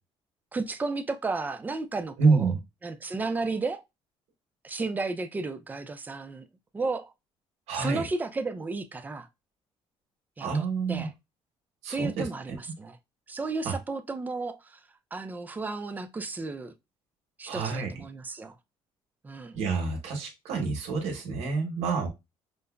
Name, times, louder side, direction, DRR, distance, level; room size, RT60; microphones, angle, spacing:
voice 1, 0.5-2.5 2.8-3.8 4.6-6.5 6.7-7.1 7.7-9.3 10.4-11.1 11.9-13.0 13.3-14.8 15.1-16.7 17.4-18.6 19.2-19.6, right 3 dB, 15° right, 0.4 m, -33 dB
voice 2, 2.2-2.6 7.7-8.0 10.4-11.1 11.8-12.6 13.6-13.7 17.5-17.9 19.5-22.1, right 4 dB, 85° right, 1.0 m, -27 dB
5.1 x 2.1 x 2.2 m
cardioid pair, 130°, 11 cm